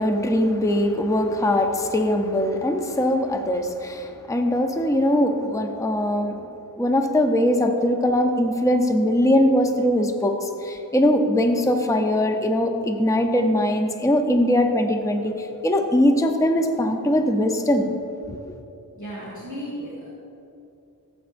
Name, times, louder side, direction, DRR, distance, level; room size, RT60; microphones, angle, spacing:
voice 1, 0.0-6.4 6.8-17.9 18.3-18.4, left 1 dB, 10° left, 4 dB, 0.6 m, -21 dB
voice 2, 18.9-20.1, equal, 55° left, -7 dB, 2.0 m, -34 dB
14.0 x 7.9 x 2.6 m, 2.8 s
wide cardioid pair, 55°, 35 cm